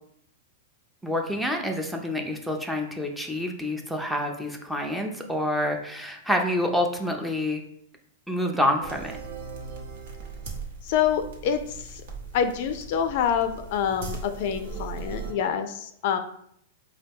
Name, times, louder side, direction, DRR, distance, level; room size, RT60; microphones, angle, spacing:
voice 1, 1.0-7.6 8.3-9.1, left 1 dB, ahead, 2 dB, 0.5 m, -27 dB
sound 1, 8.8-15.3, right 4 dB, 70° right, 1.0 m, -39 dB
voice 2, 10.8-12.0 12.3-16.2, left 8 dB, 55° left, 9 dB, 0.3 m, -26 dB
4.0 x 2.2 x 3.4 m, 0.69 s
hypercardioid pair, 140°, 0 cm